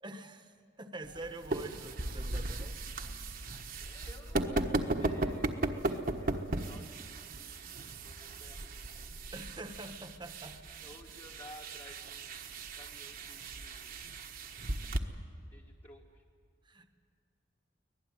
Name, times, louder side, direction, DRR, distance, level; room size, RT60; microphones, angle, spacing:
voice 1, 0.0-2.8 9.3-10.9 16.6-16.9, right 2 dB, 25° right, 8 dB, 1.2 m, -46 dB
sound 1, 1.0-15.0, right 2 dB, 50° right, 1.3 m, -37 dB
voice 2, 3.7-7.8 8.0-8.8 10.8-14.0 15.5-16.2, left 1 dB, 30° left, -1 dB, 1.5 m, -55 dB
24.5 x 18.0 x 9.8 m, 2.3 s
head